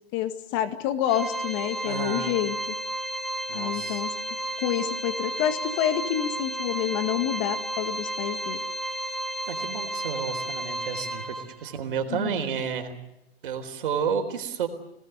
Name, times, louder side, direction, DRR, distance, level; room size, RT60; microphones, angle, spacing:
voice 1, 0.1-2.6 3.5-4.1 4.6-8.6 12.1-12.4, left 11 dB, 30° left, 9 dB, 1.9 m, -28 dB
Organ, 1.1-11.8, right 1 dB, ahead, 1.2 m, -32 dB
voice 2, 1.8-2.3 3.5-4.0 9.5-12.9 13.4-14.7, right 7 dB, 60° right, 5 dB, 4.1 m, -31 dB
26.5 x 19.0 x 8.1 m, 0.87 s
hypercardioid pair, 155°, 30 cm